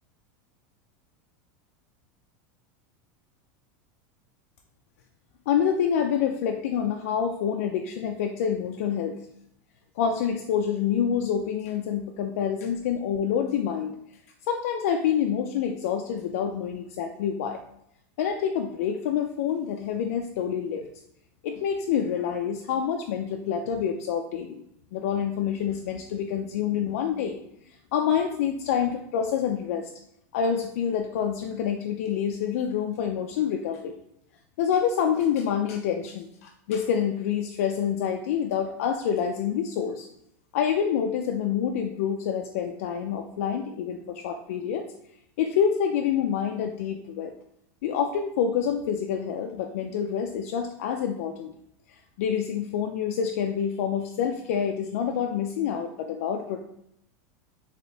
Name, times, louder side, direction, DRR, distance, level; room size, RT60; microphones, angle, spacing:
voice 1, 5.5-9.2 10.0-13.9 14.5-17.6 18.2-20.9 21.4-24.6 24.9-27.4 27.9-29.9 30.3-33.9 34.6-40.1 40.5-44.9 45.4-47.3 47.8-51.5 52.2-56.6, left 8 dB, 60° left, 4 dB, 0.4 m, -27 dB
4.1 x 2.8 x 3.3 m, 0.78 s
supercardioid pair, 175°, 9 cm